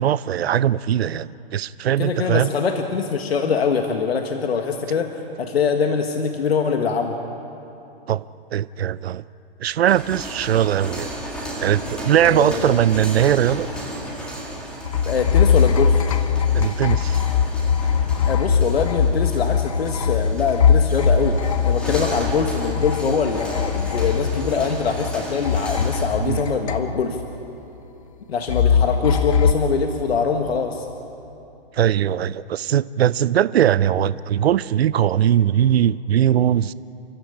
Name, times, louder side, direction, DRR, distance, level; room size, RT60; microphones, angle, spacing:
voice 1, 0.0-2.5 8.1-8.2 8.5-9.2 9.6-11.1 11.6-13.7 16.5-17.2 26.2-26.4 31.7-36.7, right 10 dB, 75° right, 18 dB, 0.6 m, -20 dB
voice 2, 2.0-7.2 12.2-12.8 15.0-16.0 18.3-27.2 28.3-30.9, left 5 dB, 75° left, 5 dB, 1.6 m, -23 dB
sound 1, 9.7-26.2, right 1 dB, 5° left, 1.7 m, -34 dB
sound 2, 14.8-25.1 25.4-27.3 28.5-29.5, left 6 dB, 35° left, 0.7 m, -21 dB
30.0 x 13.5 x 8.6 m, 2.9 s
hypercardioid pair, 175°, 31 cm